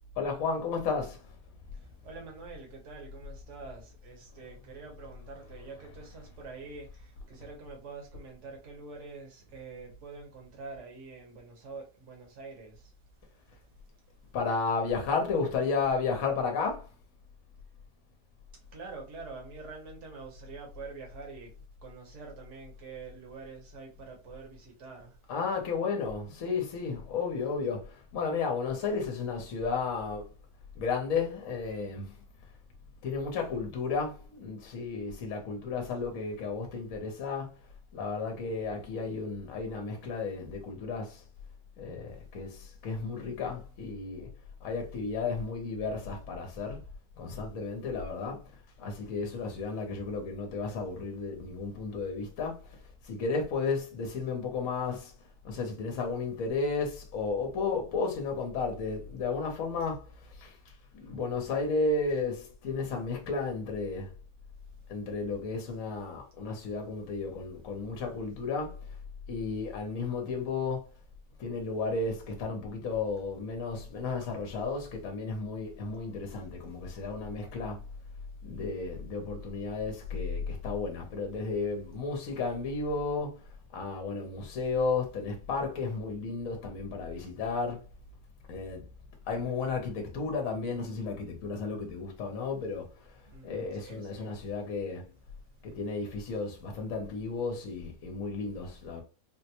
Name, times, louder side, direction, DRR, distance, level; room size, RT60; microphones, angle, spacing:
voice 1, 0.2-1.3 5.3-6.1 14.3-16.9 25.3-30.3 30.7-32.2 33.0-37.5 37.9-41.2 41.8-44.3 44.6-46.8 47.2-48.5 48.8-52.8 53.0-55.1 55.4-60.6 60.9-64.1 64.9-68.8 69.3-70.9 71.4-77.8 78.4-83.4 83.7-87.8 88.5-88.9 89.3-93.1 93.4-95.1 95.6-99.0, left 4 dB, 65° left, 1.1 m, -33 dB
voice 2, 1.7-12.9 18.7-21.5 21.8-25.2 93.3-94.4, right 4 dB, 55° right, 1.3 m, -46 dB
3.8 x 2.1 x 2.8 m
omnidirectional pair, 1.6 m